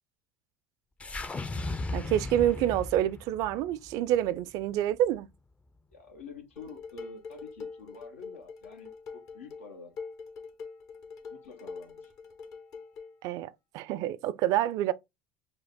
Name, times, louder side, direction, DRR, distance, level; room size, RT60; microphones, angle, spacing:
sound 1, 1.0-5.3, left 2 dB, 20° left, 0.4 m, -37 dB
voice 1, 1.9-5.3 13.2-14.9, right 12 dB, 60° right, 0.4 m, -27 dB
voice 2, 5.9-10.0 11.3-12.1, left 4 dB, 90° left, 0.9 m, -48 dB
Dishes pots and pans, 6.6-13.2, left 5 dB, 60° left, 1.1 m, -44 dB
5.1 x 2.0 x 3.6 m
hypercardioid pair, 70°, 7 cm